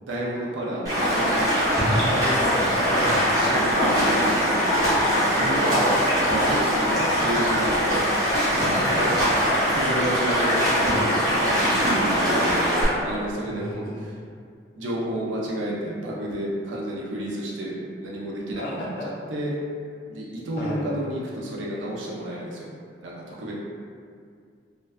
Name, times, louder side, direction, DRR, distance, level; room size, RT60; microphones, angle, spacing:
voice 1, 0.0-2.0 3.3-5.9 6.3-8.5 8.8-9.1 9.7-14.2 14.8-18.9 19.3-19.6 20.1-22.7 23.0-23.5, right 1 dB, 85° right, -4 dB, 0.5 m, -31 dB
Stream, 0.8-12.8, equal, 20° right, 0.6 m, -22 dB
voice 2, 2.1-3.3 5.4-5.9 8.5-9.6 13.5-14.0 18.5-19.1 20.6-20.8, left 1 dB, 50° left, -4 dB, 0.4 m, -33 dB
2.5 x 2.1 x 2.3 m, 2.2 s
head